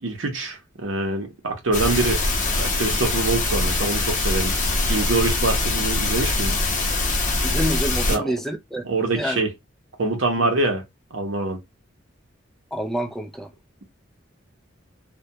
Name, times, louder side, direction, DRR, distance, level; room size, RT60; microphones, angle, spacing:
voice 1, 0.0-2.2 2.5-4.5 4.9-6.6 8.1-8.3 8.8-9.5 10.0-10.8 11.1-11.6, right 3 dB, 75° right, 0.8 m, -24 dB
sound 1, 1.7-8.2, left 2 dB, 40° left, 0.7 m, -23 dB
voice 2, 7.4-8.8 9.2-9.4 12.7-13.5, equal, ahead, 0.4 m, -27 dB
2.2 x 2.2 x 2.7 m
head